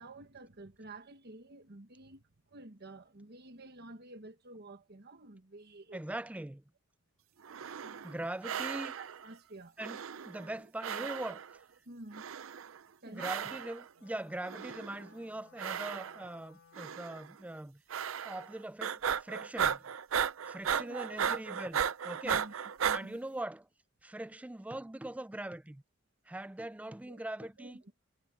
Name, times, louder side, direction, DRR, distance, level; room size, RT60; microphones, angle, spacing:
voice 1, 0.0-6.0 7.8-8.1 8.9-9.8 11.8-12.2 13.0-13.4 20.6-21.3 22.2-22.5 22.8-23.2 27.1-27.8, right 3 dB, 50° right, 1.4 m, -50 dB
voice 2, 5.9-6.6 8.0-8.9 9.8-11.4 13.1-17.8 18.2-19.8 20.5-21.8 22.0-22.4 22.9-23.7 24.0-25.8 26.3-27.8, right 1 dB, 5° right, 0.3 m, -41 dB
sound 1, 7.4-8.2 8.4-9.2 9.8-10.6 10.8-11.6 12.1-12.8 13.2-13.8 14.4-15.1 15.6-16.4 16.8-17.2 17.9-18.5 18.8-23.0, right 7 dB, 70° right, 0.5 m, -35 dB
Wind instrument woodwind instrument, 13.9-17.3, left 6 dB, 75° left, 2.1 m, -62 dB
head